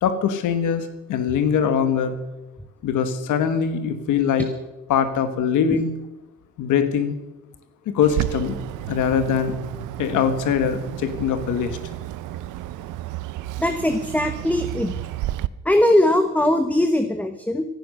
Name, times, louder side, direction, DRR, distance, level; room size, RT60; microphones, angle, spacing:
voice 1, 0.0-2.2 2.8-4.5 4.9-5.9 6.6-7.1 7.9-8.6 8.9-9.5 10.0-11.8, left 7 dB, 85° left, 9 dB, 1.5 m, -22 dB
Bird, 8.0-15.5, right 15 dB, 85° right, 0.6 m, -31 dB
voice 2, 13.6-14.9 15.6-17.7, left 1 dB, 5° left, 7 dB, 1.1 m, -20 dB
16.5 x 10.5 x 6.5 m, 1.0 s
cardioid pair, 90°, 30 cm